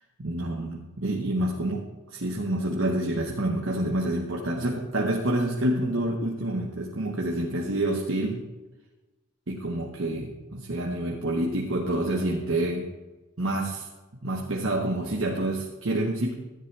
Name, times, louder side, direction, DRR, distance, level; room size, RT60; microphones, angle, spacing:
voice 1, 0.2-8.4 9.5-12.9 13.4-13.9 14.2-16.3, right 1 dB, 70° right, -1 dB, 1.2 m, -28 dB
13.5 x 11.0 x 3.4 m, 1.1 s
head